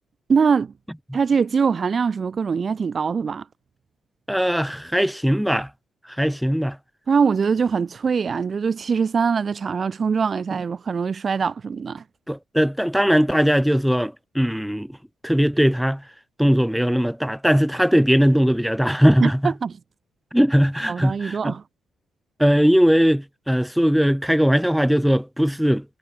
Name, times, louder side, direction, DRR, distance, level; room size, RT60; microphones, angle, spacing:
voice 1, 0.3-0.7 1.1-3.4 7.1-12.0 19.2-19.7 20.9-21.6, right 5 dB, 40° right, 6.6 m, -22 dB
voice 2, 4.3-5.7 6.2-6.8 12.3-14.9 15.2-16.0 16.4-19.5 20.3-21.5 22.4-25.8, equal, ahead, 4.8 m, -19 dB
cardioid pair, 90°, 0 cm